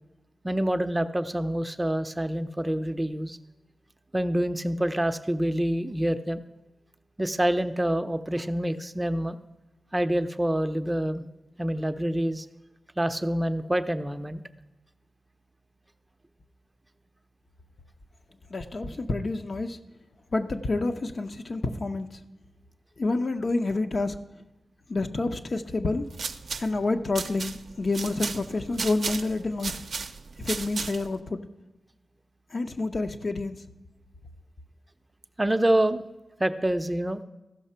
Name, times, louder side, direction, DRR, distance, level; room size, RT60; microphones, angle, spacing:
voice 1, 0.4-3.4 4.1-6.4 7.2-9.4 9.9-11.3 11.6-12.5 13.0-14.4 35.4-36.0 36.4-37.2, right 1 dB, 15° right, 9 dB, 0.5 m, -26 dB
voice 2, 18.5-19.8 20.3-22.1 23.0-24.1 24.9-26.0 26.6-29.8 30.4-31.4 32.5-33.6, left 3 dB, 50° left, 7 dB, 0.7 m, -28 dB
sound 1, 25.9-31.2, right 5 dB, 70° right, 0.5 m, -35 dB
14.5 x 5.8 x 5.6 m, 1.0 s
cardioid pair, 70°, 0 cm